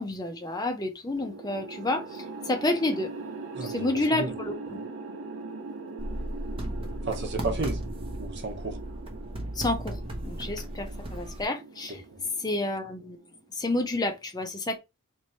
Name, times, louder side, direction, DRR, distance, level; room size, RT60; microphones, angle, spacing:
voice 1, 0.0-3.1 3.6-4.8 9.5-12.0 12.4-13.2 13.5-14.8, left 2 dB, 20° left, 0.5 m, -30 dB
sound 1, 1.2-13.5, right 3 dB, 70° right, 1.0 m, -41 dB
voice 2, 3.5-4.3 7.0-7.8 8.2-8.8 11.9-12.2, right 3 dB, 55° right, 1.0 m, -33 dB
sound 2, 6.0-11.4, right 1 dB, 25° right, 0.7 m, -35 dB
3.0 x 2.6 x 4.2 m
head